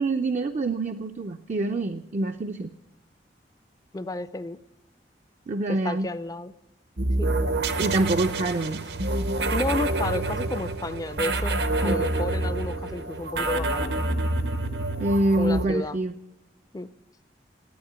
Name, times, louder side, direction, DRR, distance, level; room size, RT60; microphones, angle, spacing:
voice 1, 0.0-2.7 5.5-6.1 7.8-8.8 11.8-12.0 15.0-16.2, right 2 dB, 40° right, 6 dB, 0.4 m, -26 dB
voice 2, 3.9-4.6 5.7-6.5 7.2-7.3 9.5-11.6 11.8-13.9 15.4-15.9 16.7-16.9, left 2 dB, 20° left, 14 dB, 0.4 m, -31 dB
sound 1, 7.0-15.7, right 2 dB, 70° right, 0.9 m, -27 dB
10.5 x 9.1 x 8.6 m, 1.0 s
head